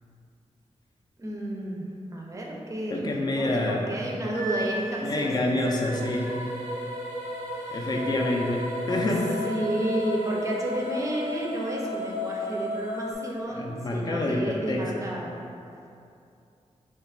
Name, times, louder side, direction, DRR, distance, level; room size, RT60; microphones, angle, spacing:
voice 1, 1.2-5.6 7.5-7.9 9.4-15.4, right 1 dB, 25° right, -2 dB, 0.5 m, -31 dB
voice 2, 2.9-3.9 5.0-6.3 7.7-9.3 13.5-14.9, left 1 dB, 35° left, 0 dB, 0.4 m, -27 dB
Wind instrument woodwind instrument, 4.3-6.3, right 1 dB, 80° left, 0.6 m, -37 dB
sound 1, 5.9-13.1, left 1 dB, 80° right, 0.6 m, -34 dB
3.0 x 2.4 x 4.3 m, 2.6 s
wide cardioid pair, 125°, 12 cm